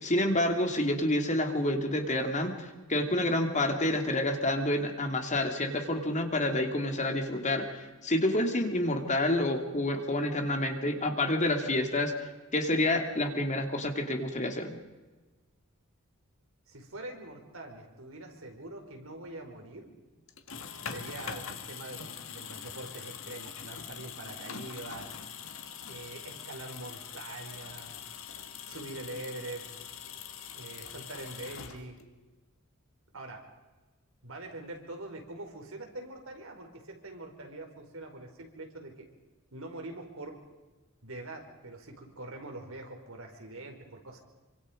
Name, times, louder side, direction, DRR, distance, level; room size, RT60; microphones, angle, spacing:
voice 1, 0.0-14.8, left 1 dB, 35° left, 4 dB, 3.0 m, -28 dB
voice 2, 16.7-19.9 20.8-25.1 25.9-28.0 28.7-29.7 30.6-32.0 33.1-33.5 34.2-39.1 39.5-40.4 41.0-44.2, right 2 dB, 70° right, 3 dB, 5.1 m, -44 dB
sound 1, 20.3-32.2, left 7 dB, 65° left, 2.1 m, -43 dB
27.5 x 25.5 x 5.3 m, 1.2 s
head